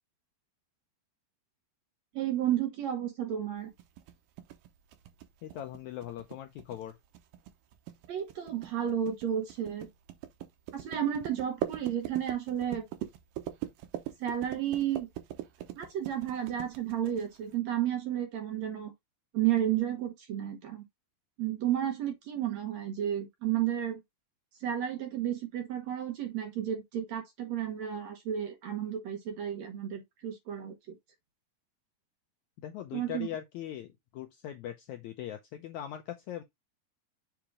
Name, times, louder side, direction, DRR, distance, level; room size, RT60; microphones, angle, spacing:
voice 1, 2.1-3.7 8.1-9.9 10.7-12.9 14.2-15.1 15.8-18.9 19.3-20.8 21.4-24.0 24.6-31.0 32.9-33.3, right 10 dB, 65° right, 1.9 m, -32 dB
sound 1, 3.8-17.5, right 12 dB, 85° right, 2.6 m, -41 dB
voice 2, 5.4-7.0 32.6-36.4, left 11 dB, 80° left, 1.7 m, -40 dB
7.1 x 3.0 x 4.9 m
omnidirectional pair, 4.1 m